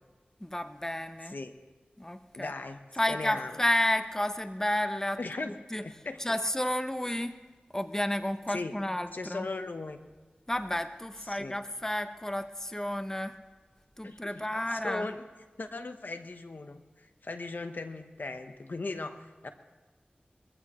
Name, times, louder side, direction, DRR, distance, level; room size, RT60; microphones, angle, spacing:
voice 1, 0.4-1.4 2.0-2.5 2.9-5.2 5.4-5.8 6.2-7.4 7.7-9.5 10.5-13.4 14.0-15.1, left 1 dB, 15° left, 9 dB, 0.8 m, -31 dB
voice 2, 2.4-2.8 3.1-3.6 5.2-5.5 5.8-6.4 8.5-8.7 9.1-10.0 11.3-11.6 14.0-15.2 15.6-19.5, left 3 dB, 70° left, 7 dB, 1.0 m, -38 dB
22.0 x 15.0 x 3.1 m, 1.3 s
wide cardioid pair, 40°, 3 cm